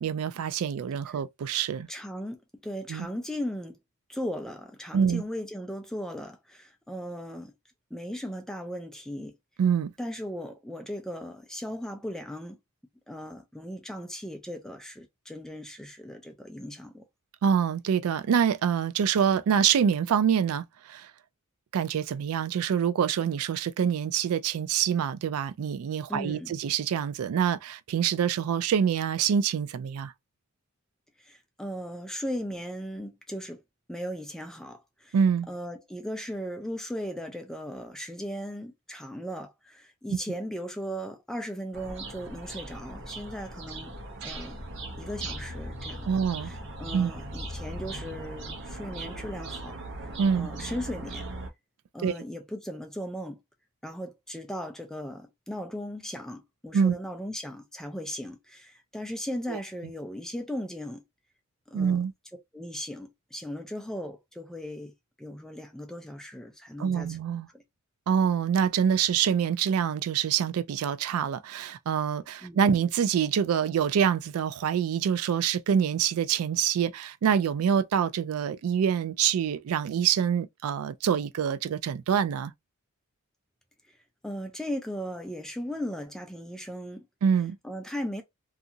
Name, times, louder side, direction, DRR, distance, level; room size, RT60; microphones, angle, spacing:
voice 1, 0.0-1.9 2.9-3.1 4.9-5.2 9.6-9.9 17.4-21.1 21.7-30.1 35.1-35.5 40.1-40.2 46.1-46.5 46.9-47.1 50.2-50.5 52.0-52.1 56.7-56.9 59.5-59.6 61.7-62.1 66.8-67.5 68.1-82.5 87.2-87.6, right 7 dB, 80° right, 0.3 m, -26 dB
voice 2, 1.9-3.8 4.1-7.5 7.9-9.4 10.0-12.6 13.1-17.0 26.1-26.5 31.2-33.6 33.9-35.2 35.5-43.9 44.2-44.6 45.0-46.1 46.4-51.3 51.9-53.4 53.8-61.0 61.7-62.0 62.5-64.9 65.2-67.2 67.5-67.6 72.4-72.6 83.9-84.0 84.2-87.1 87.6-88.2, equal, ahead, 0.4 m, -37 dB
sound 1, 41.7-51.5, right 2 dB, 55° right, 0.8 m, -39 dB
2.7 x 2.4 x 2.6 m
head